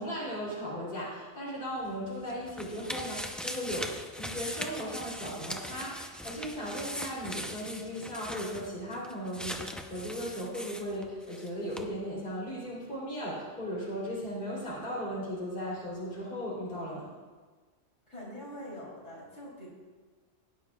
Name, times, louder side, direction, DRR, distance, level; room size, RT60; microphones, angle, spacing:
voice 1, 0.0-17.1, equal, 45° left, -7 dB, 3.4 m, -37 dB
sound 1, 1.8-11.5 11.7-11.8, equal, ahead, 0.4 m, -40 dB
voice 2, 18.1-19.7, equal, 75° left, -7 dB, 3.9 m, -44 dB
18.0 x 8.9 x 2.4 m, 1.4 s
omnidirectional pair, 1.3 m